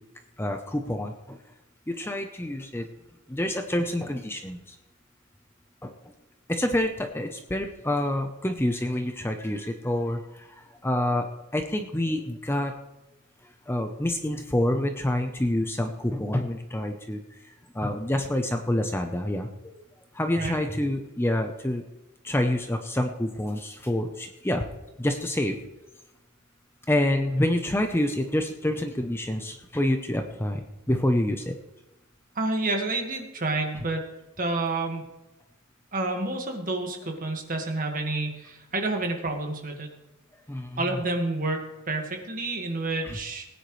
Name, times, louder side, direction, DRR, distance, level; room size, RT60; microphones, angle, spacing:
voice 1, 0.4-1.4 1.9-2.9 3.3-4.8 5.8-5.9 6.5-12.7 13.4-19.8 20.1-21.8 22.2-24.6 25.0-25.6 26.9-31.6 40.5-41.0 43.0-43.2, left 1 dB, 10° left, 5 dB, 0.7 m, -27 dB
voice 2, 32.4-34.0 34.4-35.0 35.9-39.9 40.8-43.5, right 2 dB, 40° right, 3 dB, 1.8 m, -29 dB
19.5 x 9.7 x 3.2 m, 1.0 s
head